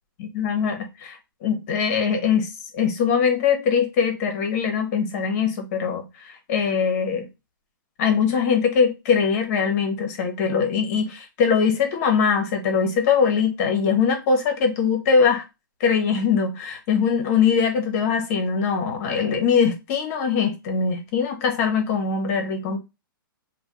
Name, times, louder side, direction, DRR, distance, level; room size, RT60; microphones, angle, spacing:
voice 1, 0.2-2.5 2.7-7.3 8.0-15.4 15.8-22.8, left 6 dB, 45° left, 1.0 m, -22 dB
2.6 x 2.3 x 3.5 m
hypercardioid pair, 145°, 12 cm